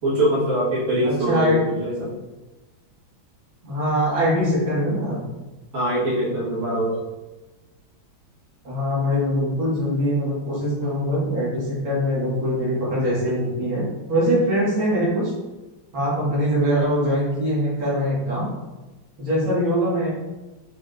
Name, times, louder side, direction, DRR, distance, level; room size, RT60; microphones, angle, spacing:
voice 1, 0.0-2.1 5.7-7.0, right 1 dB, 40° right, -9 dB, 1.9 m, -23 dB
voice 2, 1.0-1.6 3.6-5.2 8.6-15.3 15.9-18.5 19.2-20.1, equal, 85° right, -8 dB, 2.6 m, -22 dB
4.9 x 4.3 x 2.5 m, 1.1 s
omnidirectional pair, 2.1 m